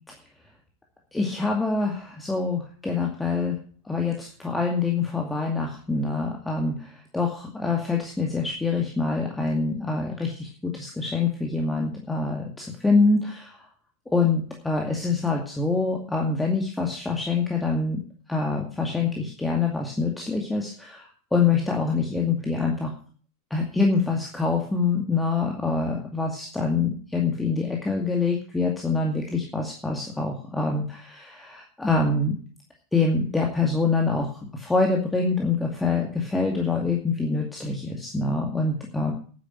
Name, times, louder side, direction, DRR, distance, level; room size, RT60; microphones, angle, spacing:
voice 1, 1.1-3.6 3.9-13.6 14.1-18.0 18.3-21.1 21.3-22.9 23.5-32.4 32.9-39.1, left 4 dB, 5° left, 1 dB, 2.2 m, -25 dB
9.9 x 9.4 x 7.6 m, 0.44 s
figure-of-eight pair, 90°, 0 cm